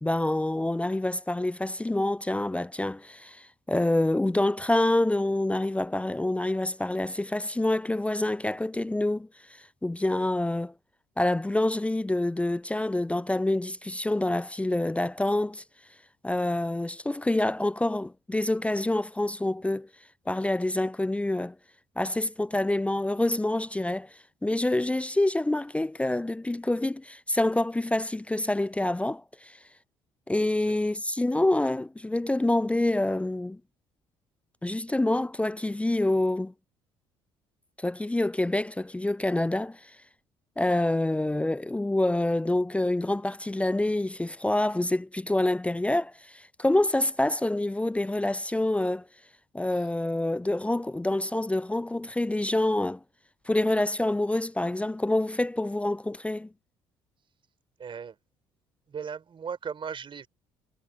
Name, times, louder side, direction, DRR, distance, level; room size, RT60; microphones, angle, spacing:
voice 1, 0.0-9.3 9.8-10.7 11.2-15.6 16.2-19.9 20.3-21.5 22.0-24.1 24.4-29.6 30.3-33.6 34.6-36.5 37.8-39.8 40.6-49.1 49.5-53.0 53.5-56.5, left 1 dB, 10° left, 0.6 m, -27 dB
voice 2, 57.8-58.2 58.9-60.3, right 6 dB, 40° right, 4.4 m, -37 dB
hypercardioid pair, 55°, 13 cm